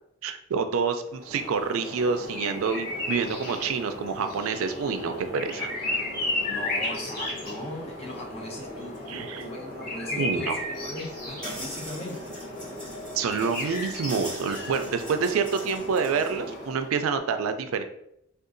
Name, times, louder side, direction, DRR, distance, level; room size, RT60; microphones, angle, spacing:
voice 1, 0.2-5.7 9.1-9.4 10.2-10.6 13.1-17.8, right 5 dB, 85° right, 8 dB, 0.4 m, -27 dB
sound 1, 1.1-17.0, left 1 dB, 45° left, 1.1 m, -34 dB
voice 2, 6.5-12.3, left 1 dB, 30° left, 0 dB, 0.5 m, -39 dB
sound 2, 8.9-9.0 9.4-9.5 10.6-10.7 11.4-16.4, right 1 dB, 5° left, 1.3 m, -42 dB
3.7 x 2.3 x 2.5 m, 0.77 s
head